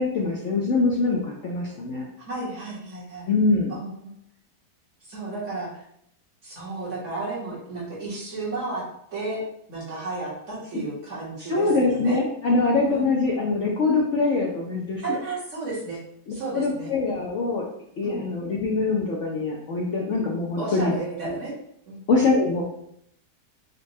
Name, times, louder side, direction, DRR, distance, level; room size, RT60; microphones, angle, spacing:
voice 1, 0.0-2.1 3.3-3.7 11.5-15.2 16.5-17.6 18.0-21.0 22.1-22.6, left 3 dB, 70° left, -2 dB, 0.7 m, -23 dB
voice 2, 2.2-3.3 3.7-4.1 5.0-5.8 6.4-8.8 9.1-9.4 9.7-12.2 12.8-13.1 15.0-16.0 16.3-16.9 18.0-18.2 20.6-21.5 21.9-22.0, right 3 dB, 50° right, -6 dB, 1.3 m, -33 dB
4.1 x 2.2 x 2.6 m, 0.72 s
omnidirectional pair, 1.7 m